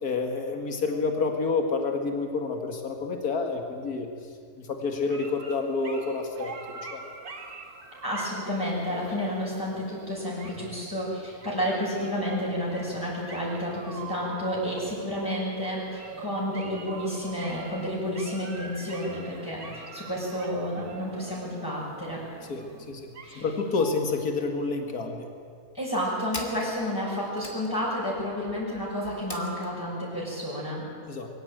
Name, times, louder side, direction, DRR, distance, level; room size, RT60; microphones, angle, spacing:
voice 1, 0.0-4.1 4.6-7.1 19.7-19.8 22.5-22.6 22.9-23.1 23.4-25.3 31.1-31.3, left 4 dB, 80° left, 4 dB, 2.5 m, -29 dB
sound 1, 4.9-23.9, right 4 dB, 85° right, 2.6 m, -44 dB
voice 2, 8.0-22.2 23.2-23.5 25.7-30.9, equal, 15° left, -9 dB, 6.4 m, -31 dB
sound 2, 24.5-25.1 25.7-29.7, left 1 dB, 30° left, 2.8 m, -43 dB
23.5 x 16.0 x 9.1 m, 2.2 s
omnidirectional pair, 1.6 m